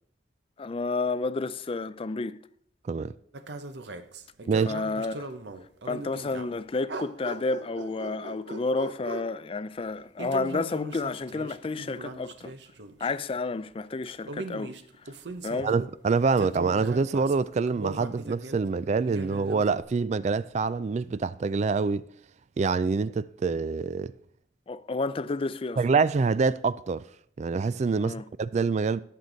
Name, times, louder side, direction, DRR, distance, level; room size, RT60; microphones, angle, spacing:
voice 1, 0.6-2.4 4.4-5.3 5.9-12.5 13.0-14.7 15.0-15.1 15.4-15.7 24.7-25.8 28.0-28.2, left 3 dB, 30° left, 0.4 m, -31 dB
sound 1, 3.3-6.6 6.9-9.4 10.2-13.1 14.0-16.0 16.3-18.6 19.1-19.8, right 2 dB, 70° right, 0.8 m, -39 dB
voice 2, 15.6-22.1 22.6-24.1 25.8-27.0 27.4-28.1 28.4-29.0, right 4 dB, 40° right, 0.3 m, -26 dB
17.5 x 6.7 x 4.0 m
head